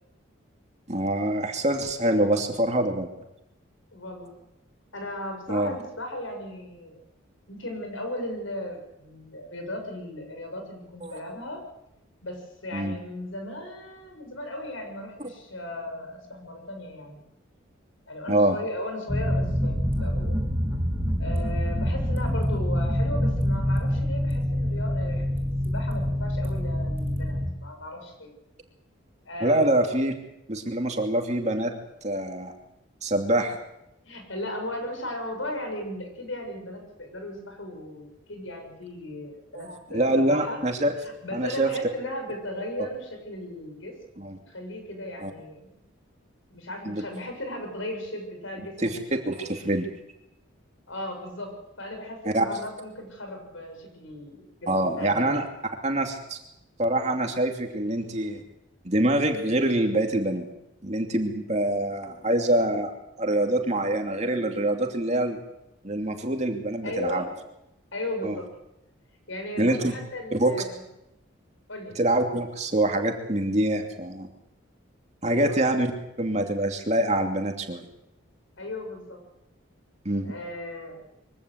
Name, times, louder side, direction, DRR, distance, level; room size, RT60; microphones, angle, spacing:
voice 1, 0.9-3.1 5.5-5.8 11.0-11.2 12.7-13.0 18.3-18.6 29.4-30.1 30.5-31.7 32.0-32.5 33.0-33.6 39.5-40.9 41.3-41.7 44.2-44.4 45.2-45.3 46.8-47.0 48.8-49.0 49.2-49.9 52.2-52.5 54.7-55.4 55.8-56.4 56.8-58.4 58.8-60.5 60.8-62.9 63.2-65.4 65.8-67.2 68.2-68.4 69.6-69.9 70.3-70.5 72.0-74.3 75.2-75.9 76.2-77.8 80.0-80.4, right 1 dB, 35° right, 3 dB, 2.7 m, -25 dB
voice 2, 3.9-4.3 4.9-7.0 7.5-11.6 12.2-17.2 18.1-20.4 21.2-28.3 29.3-29.7 34.1-40.6 41.0-44.0 44.5-45.8 46.5-49.2 50.9-55.4 66.8-67.3 67.9-68.5 69.3-70.8 71.7-71.9 75.3-75.6 78.6-79.2 80.2-81.0, left 1 dB, 75° left, 5 dB, 7.2 m, -36 dB
sound 1, 19.1-27.5, equal, 10° right, 5.5 m, -26 dB
23.5 x 16.5 x 8.1 m, 0.86 s
head